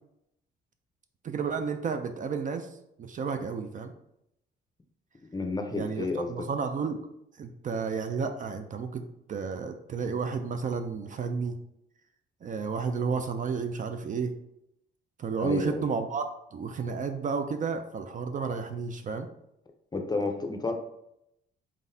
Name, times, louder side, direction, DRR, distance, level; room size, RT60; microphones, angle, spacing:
voice 1, 1.2-2.7 3.0-3.9 5.7-7.0 7.4-11.6 12.4-14.4 15.2-16.3 16.5-19.3, right 5 dB, 40° right, 7 dB, 0.4 m, -32 dB
voice 2, 5.3-6.5 15.4-15.8 19.9-20.7, left 3 dB, 20° left, 5 dB, 0.6 m, -31 dB
3.8 x 3.6 x 2.6 m, 0.81 s
cardioid pair, 90°, 20 cm